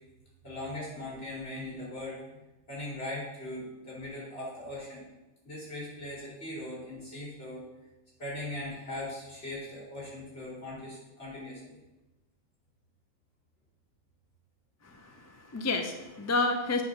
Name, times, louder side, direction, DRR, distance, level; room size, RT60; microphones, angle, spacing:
voice 1, 0.4-2.4 2.7-5.0 5.4-7.7 8.2-11.8, left 1 dB, 50° left, -6 dB, 3.7 m, -39 dB
voice 2, 14.8-16.8, left 3 dB, 25° left, 5 dB, 0.3 m, -30 dB
8.2 x 3.8 x 6.6 m, 1.0 s
omnidirectional pair, 1.3 m